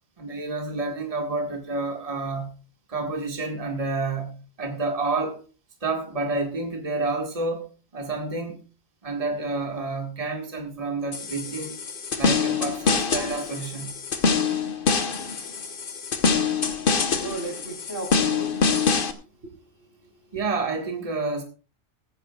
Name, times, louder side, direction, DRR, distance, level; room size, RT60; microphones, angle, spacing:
voice 1, 0.2-2.6 2.9-5.4 5.8-8.6 9.0-11.8 12.1-14.0 20.3-21.4, right 3 dB, 30° right, 1.8 m, -29 dB
sound 1, 11.1-19.1, left 5 dB, 50° left, 1.2 m, -25 dB
voice 2, 16.3-18.7 19.4-20.4, right 2 dB, 85° right, 4.8 m, -38 dB
17.5 x 14.5 x 2.4 m
omnidirectional pair, 1.3 m